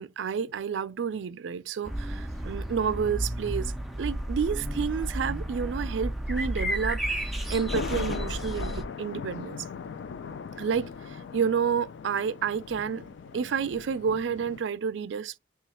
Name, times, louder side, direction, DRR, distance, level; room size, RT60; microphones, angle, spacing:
voice 1, 0.0-3.7 4.0-9.6 10.6-15.4, right 6 dB, 85° right, 0.4 m, -30 dB
sound 1, 1.8-8.8, right 1 dB, ahead, 0.4 m, -32 dB
sound 2, 7.2-14.6, left 6 dB, 75° left, 0.3 m, -39 dB
3.1 x 2.3 x 4.2 m
head